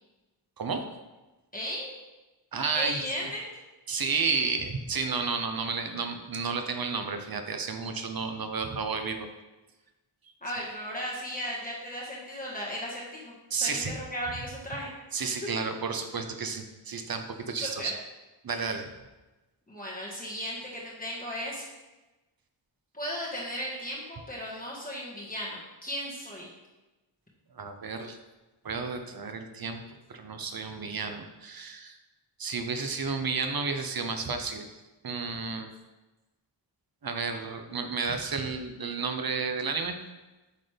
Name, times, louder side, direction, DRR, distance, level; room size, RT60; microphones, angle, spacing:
voice 1, 1.5-1.9 2.7-3.4 10.4-14.9 17.6-17.9 19.7-21.6 22.9-26.5, equal, 20° left, -5 dB, 1.6 m, -36 dB
voice 2, 2.5-3.0 3.9-9.3 13.5-14.0 15.1-17.9 18.4-18.9 27.6-28.2 28.6-29.8 30.1-32.0 32.4-34.7 35.0-35.7 37.0-39.9, right 4 dB, 50° right, 6 dB, 0.9 m, -32 dB
8.2 x 4.0 x 3.4 m, 1.1 s
cardioid pair, 50°, 46 cm